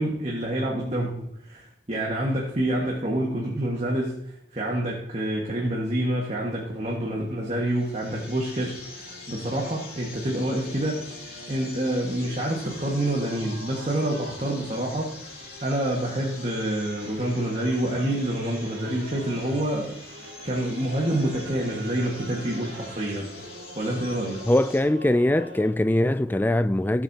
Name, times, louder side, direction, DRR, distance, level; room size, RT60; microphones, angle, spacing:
voice 1, 0.0-11.1 11.5-20.0 20.4-23.4 23.7-24.5, right 1 dB, 35° right, 1.7 m, -27 dB
Singing / Musical instrument, 6.6-25.7, right 1 dB, 85° right, 2.3 m, -45 dB
sound 1, 7.6-24.8, left 4 dB, 55° left, 2.8 m, -45 dB
voice 2, 24.5-27.0, left 1 dB, 10° left, 0.3 m, -22 dB
16.5 x 8.0 x 2.9 m
head